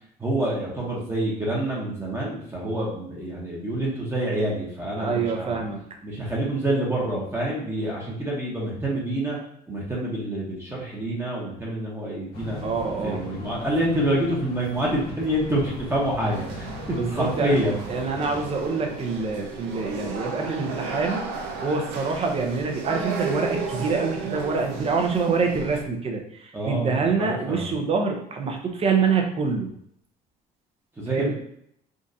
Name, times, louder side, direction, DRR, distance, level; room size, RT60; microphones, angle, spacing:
voice 1, 0.2-5.6 6.0-9.4 9.7-12.6 13.0-16.7 17.1-17.8 26.5-27.7 31.0-31.3, right 1 dB, 15° right, -4 dB, 1.0 m, -27 dB
voice 2, 4.9-5.8 12.6-13.2 16.9-17.6 17.9-21.2 21.6-29.7 31.1-31.3, right 4 dB, 35° right, 2 dB, 0.7 m, -26 dB
sound 1, 12.3-18.4, left 1 dB, 65° left, 1.1 m, -39 dB
Museum Ambience, 16.3-25.8, right 4 dB, 90° right, 0.6 m, -34 dB
3.6 x 2.6 x 2.7 m, 0.71 s
cardioid pair, 110°, 17 cm